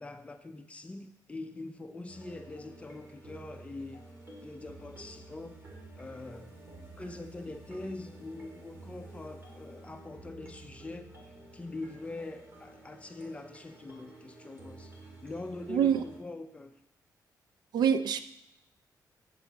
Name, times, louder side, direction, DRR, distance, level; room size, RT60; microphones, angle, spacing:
voice 1, 0.0-4.0 4.4-5.6 6.0-6.5 7.0-11.1 11.5-16.7, left 2 dB, 15° left, 6 dB, 0.6 m, -43 dB
sound 1, 2.1-16.2, right 2 dB, 30° right, 2.2 m, -51 dB
voice 2, 15.7-16.0 17.7-18.2, right 8 dB, 75° right, 12 dB, 0.5 m, -25 dB
8.2 x 7.5 x 4.0 m, 0.80 s
wide cardioid pair, 150°, 7 cm